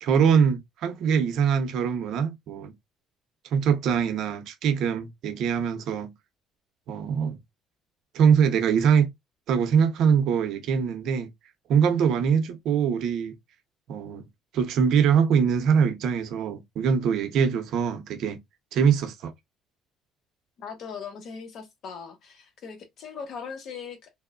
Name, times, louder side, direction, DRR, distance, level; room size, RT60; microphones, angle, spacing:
voice 1, 0.0-2.7 3.5-6.1 6.9-7.4 8.1-9.1 9.5-11.3 11.7-13.3 13.9-14.3 14.5-18.4 18.7-19.3, right 7 dB, 70° right, 0.6 m, -23 dB
voice 2, 20.6-24.1, left 6 dB, 55° left, 0.8 m, -39 dB
2.9 x 2.0 x 2.3 m
cardioid pair, 110°, 0 cm